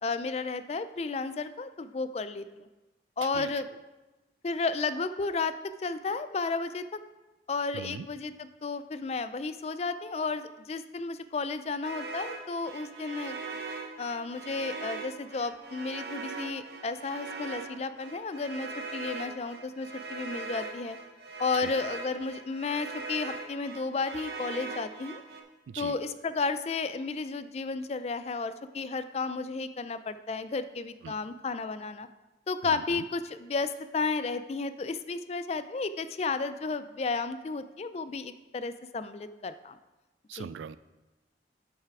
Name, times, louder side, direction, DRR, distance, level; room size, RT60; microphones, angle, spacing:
voice 1, 0.0-2.7 3.2-3.7 4.4-6.8 7.5-13.4 14.0-21.0 21.4-25.2 25.8-32.1 32.5-39.8 40.3-40.5, left 4 dB, 35° left, 12 dB, 0.3 m, -33 dB
voice 2, 3.2-3.5 7.7-8.1 21.6-21.7 25.7-26.0 31.0-31.2 32.6-33.0 40.3-40.8, right 7 dB, 85° right, 16 dB, 0.3 m, -41 dB
sound 1, 11.8-25.4, right 3 dB, 60° right, 0.8 m, -40 dB
7.8 x 5.8 x 4.7 m, 1.1 s
head